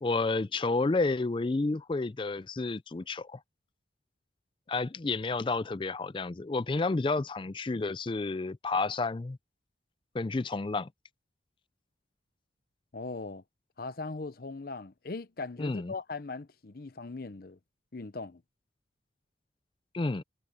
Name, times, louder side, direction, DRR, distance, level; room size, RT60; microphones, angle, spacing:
voice 1, 0.0-3.4 4.7-9.4 10.1-10.9 15.6-15.9 19.9-20.2, left 3 dB, 25° left, 0.4 m, -30 dB
voice 2, 12.9-13.4 13.8-17.6 17.9-18.4, left 3 dB, 50° left, 0.7 m, -39 dB
head